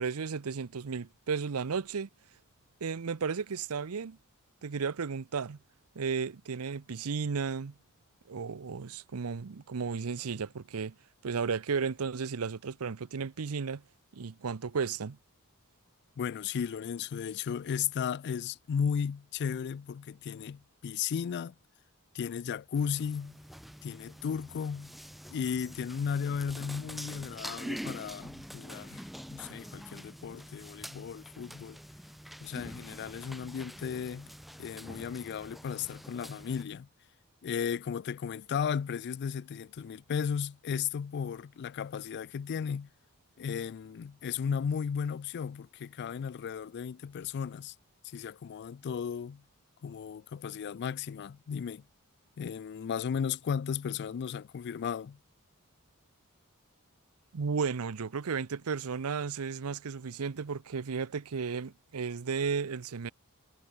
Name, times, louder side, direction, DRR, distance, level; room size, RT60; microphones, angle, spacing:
voice 1, 0.0-2.1 2.8-4.2 4.6-5.6 6.0-7.7 8.3-10.9 11.2-13.8 14.1-15.2 57.3-63.1, right 5 dB, 80° right, 0.6 m, -34 dB
voice 2, 16.2-21.5 22.1-23.4 23.8-24.9 25.3-31.8 32.4-34.3 34.6-36.9 37.4-42.9 43.4-47.7 48.0-49.4 49.8-51.8 52.4-55.2, left 7 dB, 50° left, 0.3 m, -35 dB
sound 1, 22.8-36.6, equal, ahead, 0.9 m, -45 dB
head